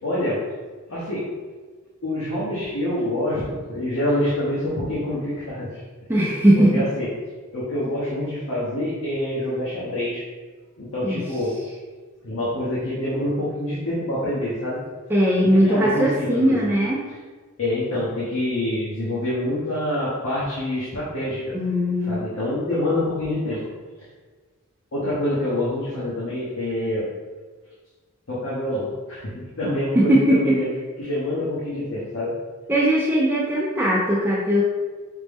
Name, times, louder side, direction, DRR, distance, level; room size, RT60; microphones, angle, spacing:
voice 1, 0.0-0.5 0.9-1.4 2.0-5.8 6.5-7.1 7.5-10.2 10.8-11.6 12.2-14.8 15.5-16.7 17.6-21.6 22.1-23.7 24.9-27.1 28.3-30.7 31.0-32.3, left 1 dB, 75° left, -9 dB, 0.9 m, -26 dB
voice 2, 6.1-6.8 11.0-11.3 15.1-17.0 21.5-22.2 30.0-30.6 32.7-34.6, right 1 dB, 10° right, -5 dB, 0.4 m, -19 dB
5.1 x 2.0 x 3.4 m, 1.4 s
head